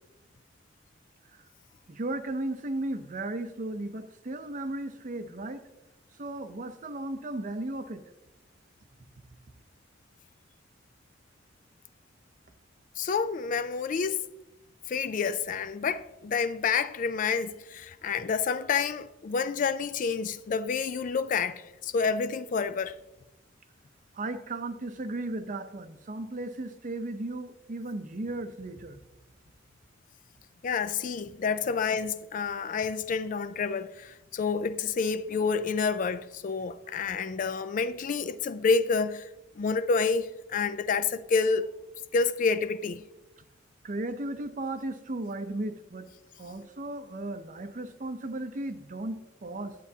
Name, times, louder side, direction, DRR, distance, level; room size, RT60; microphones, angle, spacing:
voice 1, 1.9-5.6 6.2-8.0 24.1-29.0 43.8-46.1 46.4-49.8, right 2 dB, 45° right, 0.6 m, -35 dB
voice 2, 13.0-14.2 14.9-23.0 30.6-39.3 39.6-41.7 42.1-43.0, left 5 dB, 45° left, 0.3 m, -28 dB
11.0 x 8.2 x 2.8 m
head